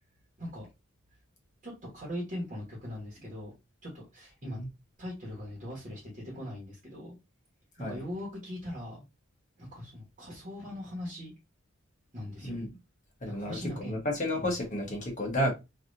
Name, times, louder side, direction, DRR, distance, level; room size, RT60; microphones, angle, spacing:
voice 1, 1.6-3.5 3.8-4.6 5.0-7.1 7.8-9.0 9.6-11.3 12.1-12.6 13.2-14.0, left 1 dB, 40° right, 1.3 m, -40 dB
voice 2, 13.2-15.5, left 1 dB, 40° left, 1.1 m, -31 dB
3.2 x 2.7 x 2.6 m
head